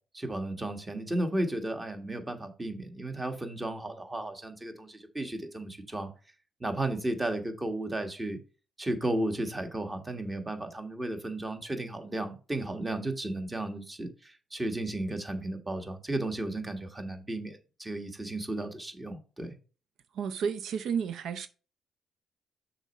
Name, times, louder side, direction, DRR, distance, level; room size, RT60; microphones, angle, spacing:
voice 1, 0.1-6.1 6.6-8.4 8.8-19.5, right 1 dB, 20° right, 1.5 m, -34 dB
voice 2, 20.1-21.5, right 7 dB, 75° right, 0.5 m, -31 dB
6.4 x 4.3 x 5.4 m
cardioid pair, 90°, 0 cm